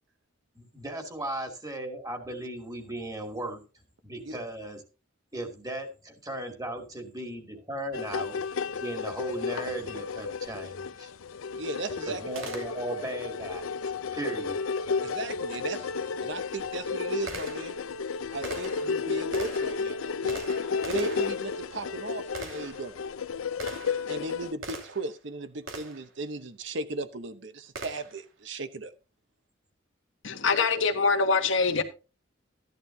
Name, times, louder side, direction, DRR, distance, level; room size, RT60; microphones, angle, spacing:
voice 1, 0.6-3.6 4.0-4.8 5.3-8.4 8.8-11.1 12.1-13.8 14.1-14.6, right 1 dB, 20° right, 2.5 m, -36 dB
sound 1, 7.9-24.5, left 5 dB, 90° left, 0.5 m, -32 dB
voice 2, 11.6-12.2 15.0-17.8 18.3-20.4 20.9-22.9 24.1-28.9, right 3 dB, 60° right, 0.9 m, -37 dB
Gunshot gunfire, 12.4-13.2 15.5-15.6 16.3-25.2 25.7-26.1 27.8-28.3, right 3 dB, 80° right, 2.8 m, -43 dB
voice 3, 30.2-31.8, left 4 dB, 65° left, 1.4 m, -24 dB
13.0 x 11.0 x 2.7 m
head